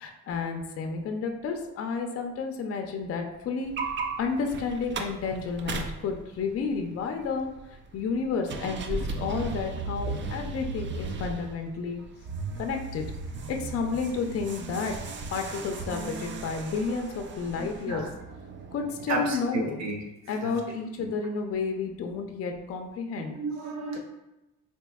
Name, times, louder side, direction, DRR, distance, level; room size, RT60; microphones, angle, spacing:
voice 1, 0.0-3.7 4.2-12.0 12.6-13.0 13.5-15.0 15.3-18.1 18.7-19.8 20.3-23.4, left 5 dB, 50° left, 4 dB, 0.5 m, -31 dB
sound 1, 3.6-19.3, right 3 dB, 40° right, 0.4 m, -37 dB
voice 2, 17.6-18.1 19.1-20.5 21.0-21.1 23.2-24.0, right 2 dB, 60° right, 1 dB, 0.9 m, -33 dB
4.3 x 2.8 x 2.3 m, 0.95 s
cardioid pair, 90°, 30 cm